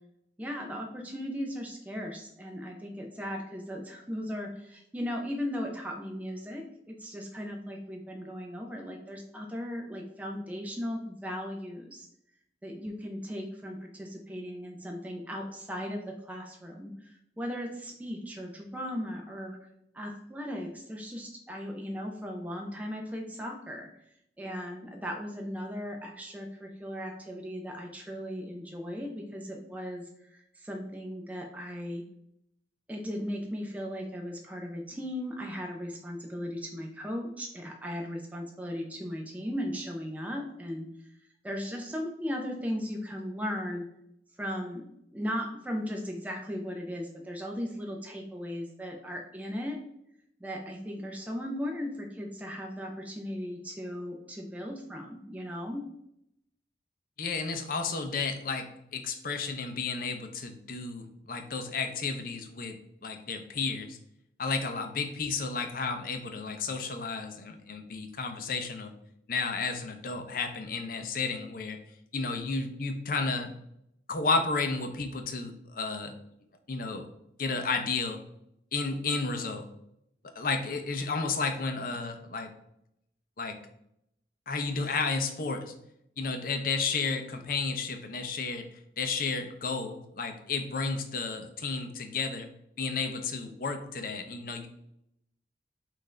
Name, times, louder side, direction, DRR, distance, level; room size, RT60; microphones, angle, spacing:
voice 1, 0.4-12.1 12.6-19.6 19.9-23.9 24.4-32.0 32.9-40.9 41.4-43.9 44.4-49.8 50.4-55.8, equal, 10° right, 1 dB, 0.5 m, -37 dB
voice 2, 57.2-64.0 64.4-68.9 69.3-71.8 72.1-73.5 74.1-76.2 76.7-77.1 77.4-78.2 78.7-79.7 80.3-82.5 83.4-83.6 84.5-85.7 86.2-92.5 92.8-94.7, left 4 dB, 50° left, 6 dB, 0.6 m, -32 dB
5.8 x 2.6 x 3.2 m, 0.77 s
head